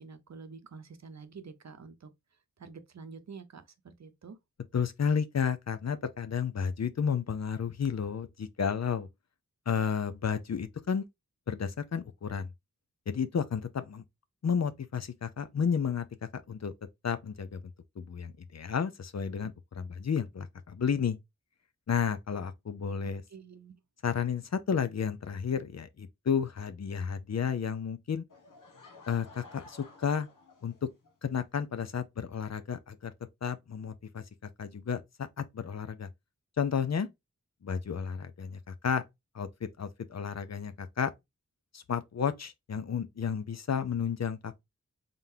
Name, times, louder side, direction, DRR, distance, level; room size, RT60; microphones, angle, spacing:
voice 1, 0.0-2.1 2.6-4.4 23.0-23.8, right 5 dB, 60° right, 0.7 m, -48 dB
voice 2, 4.7-9.1 9.7-11.0 11.5-12.5 13.1-14.0 14.4-16.0 16.3-16.7 17.0-17.6 18.0-21.2 21.9-23.2 24.0-28.2 29.1-30.3 30.6-30.8 31.2-33.1 33.4-36.1 36.6-37.1 37.6-39.0 39.3-39.5 39.8-41.1 41.7-44.6, left 7 dB, 55° left, 0.6 m, -32 dB
Laughter / Crowd, 28.3-31.1, left 3 dB, 85° left, 1.2 m, -53 dB
3.8 x 3.6 x 2.7 m
wide cardioid pair, 60°, 31 cm